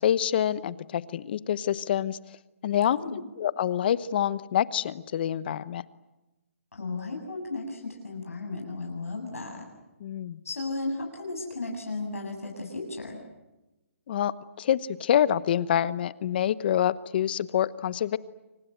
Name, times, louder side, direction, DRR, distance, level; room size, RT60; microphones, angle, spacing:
voice 1, 0.0-2.2 2.6-3.0 3.4-5.8 10.0-10.4 14.1-18.2, left 10 dB, 45° left, 17 dB, 1.0 m, -26 dB
voice 2, 6.7-9.6 10.4-13.2, left 3 dB, 85° left, 1 dB, 7.7 m, -35 dB
29.5 x 25.0 x 7.8 m, 1.0 s
hypercardioid pair, 150°, 8 cm